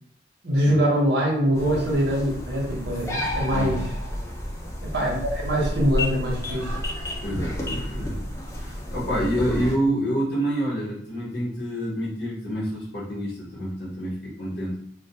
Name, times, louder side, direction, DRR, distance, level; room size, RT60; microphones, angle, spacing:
voice 1, 0.4-3.8 4.9-6.7, equal, 60° right, -3 dB, 0.8 m, -23 dB
sound 1, 1.6-9.8, left 1 dB, 15° left, 0.4 m, -31 dB
voice 2, 7.2-8.2 8.6-14.8, equal, 60° left, -7 dB, 0.7 m, -27 dB
2.1 x 2.1 x 2.8 m, 0.66 s
head